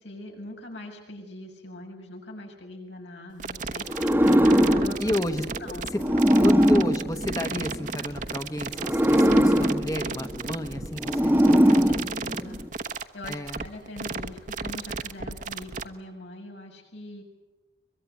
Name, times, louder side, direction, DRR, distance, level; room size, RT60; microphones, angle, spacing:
voice 1, 0.0-5.0 5.6-5.9 11.7-12.7 13.1-17.2, left 1 dB, 90° left, 1 dB, 7.0 m, -42 dB
sound 1, 3.4-15.8, right 4 dB, 45° right, 1.1 m, -34 dB
sound 2, 3.9-8.0 8.7-12.7, equal, 10° right, 1.1 m, -22 dB
voice 2, 5.0-5.4 5.8-6.0 6.4-12.1 13.2-13.7, left 1 dB, 20° left, 7 dB, 1.1 m, -31 dB
23.5 x 22.5 x 9.3 m, 1.0 s
head